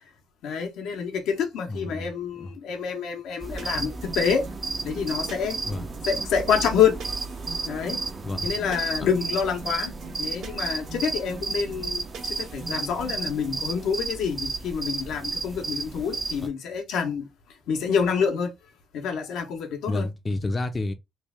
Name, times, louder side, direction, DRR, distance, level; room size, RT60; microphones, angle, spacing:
voice 1, 0.4-4.4 4.8-5.6 6.0-6.9 7.7-8.0 8.4-9.9 10.2-12.0 12.4-17.3 17.7-18.5 18.9-20.1, left 7 dB, 85° left, 1.0 m, -27 dB
voice 2, 1.7-2.1 2.4-2.5 5.6-5.9 8.2-8.5 9.0-9.1 19.9-20.9, left 2 dB, 30° left, 0.6 m, -29 dB
sound 1, 3.4-16.5, right 3 dB, 35° right, 0.5 m, -33 dB
sound 2, 3.6-13.9, right 3 dB, 80° right, 1.3 m, -43 dB
3.2 x 2.4 x 3.5 m
cardioid pair, 90°, 0 cm